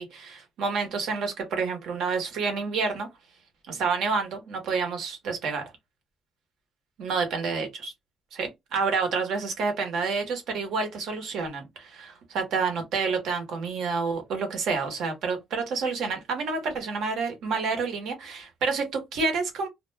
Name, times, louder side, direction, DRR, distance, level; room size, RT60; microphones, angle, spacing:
voice 1, 0.0-3.1 3.7-5.7 7.0-7.9 8.3-19.7, right 4 dB, 65° right, 1.0 m, -29 dB
2.3 x 2.2 x 3.2 m
cardioid pair, 180°, 0 cm